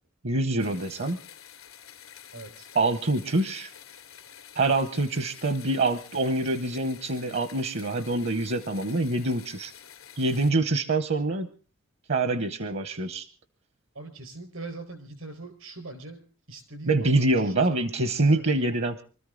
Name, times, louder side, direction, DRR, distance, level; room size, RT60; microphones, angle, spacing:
voice 1, 0.2-1.2 2.7-3.7 4.5-9.7 10.2-11.5 12.1-13.3 16.9-19.0, right 2 dB, 60° right, 11 dB, 0.9 m, -25 dB
sound 1, 0.6-10.5, left 9 dB, 90° left, 2.6 m, -49 dB
voice 2, 2.3-2.7 13.9-17.8 18.2-18.4, right 2 dB, 80° right, 7 dB, 4.6 m, -42 dB
24.5 x 13.5 x 3.8 m, 0.36 s
head